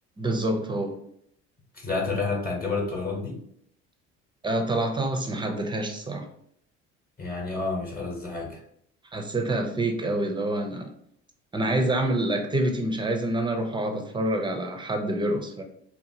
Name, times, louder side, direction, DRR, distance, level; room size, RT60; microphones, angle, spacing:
voice 1, 0.2-0.9 4.4-6.3 9.1-10.9 11.5-15.6, right 1 dB, 15° right, 4 dB, 0.5 m, -27 dB
voice 2, 1.7-3.4 7.2-8.6, left 3 dB, 30° left, -1 dB, 0.9 m, -29 dB
2.8 x 2.4 x 2.7 m, 0.68 s
supercardioid pair, 85°, 31 cm